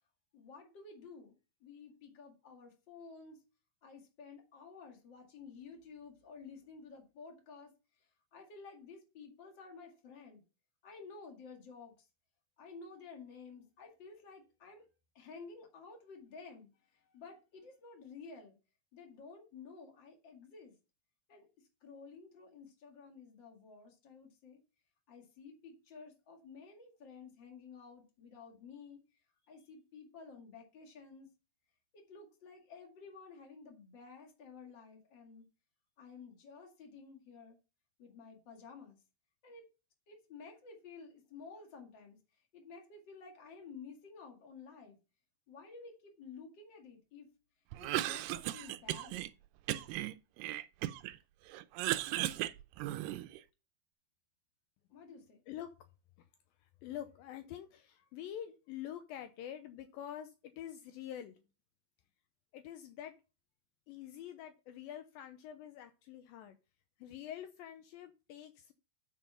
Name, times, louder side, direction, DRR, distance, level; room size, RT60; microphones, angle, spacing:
voice 1, 0.3-3.4 3.8-10.4 10.8-12.1 12.6-14.9 15.1-18.6 18.9-20.7 21.3-24.6 25.1-29.0 29.5-31.3 31.9-35.5 36.0-37.6 38.0-39.0 39.4-39.7 40.1-45.0 45.5-47.3 47.8-49.2 54.9-55.4, left 5 dB, 35° left, 2.3 m, -53 dB
Cough, 47.7-49.3 49.7-51.2 51.5-53.4, right 15 dB, 80° right, 2.1 m, -36 dB
voice 2, 56.6-61.4 62.5-63.2 63.9-66.6 67.0-68.7, left 10 dB, 80° left, 2.3 m, -46 dB
8.7 x 5.5 x 5.5 m
omnidirectional pair, 4.3 m